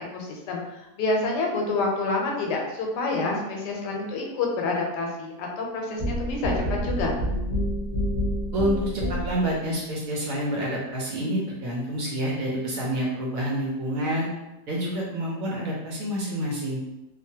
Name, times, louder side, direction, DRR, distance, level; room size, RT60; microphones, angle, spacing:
voice 1, 0.0-7.1, left 3 dB, 85° left, 0 dB, 1.2 m, -28 dB
sound 1, 6.0-9.5, equal, 30° left, 0.8 m, -28 dB
voice 2, 8.5-14.3 14.7-16.8, equal, 65° right, -4 dB, 0.9 m, -28 dB
2.9 x 2.3 x 2.7 m, 0.95 s
omnidirectional pair, 1.8 m